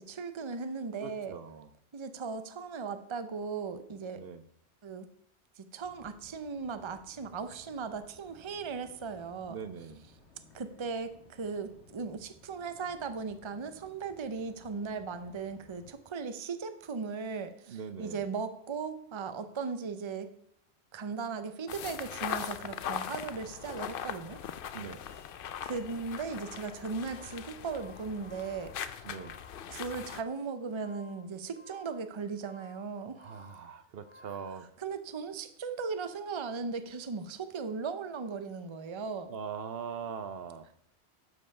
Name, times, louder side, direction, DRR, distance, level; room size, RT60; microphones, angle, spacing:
voice 1, 0.0-1.3 1.9-4.2 4.8-5.1 5.6-9.6 10.5-20.3 20.9-24.4 25.6-29.1 29.7-33.3 34.8-39.3, right 5 dB, 30° right, 10 dB, 0.6 m, -37 dB
voice 2, 1.0-1.7 4.2-4.4 9.5-10.0 17.7-18.3 24.7-25.0 29.0-29.3 33.1-34.7 39.3-40.7, right 6 dB, 65° right, 11 dB, 0.9 m, -41 dB
sound 1, 5.8-15.9, left 3 dB, 85° left, 1.7 m, -60 dB
sound 2, 21.7-30.2, left 9 dB, 60° left, 0.7 m, -40 dB
sound 3, 26.3-34.6, left 2 dB, 30° left, 1.1 m, -58 dB
12.5 x 5.4 x 5.4 m, 0.71 s
omnidirectional pair, 1.1 m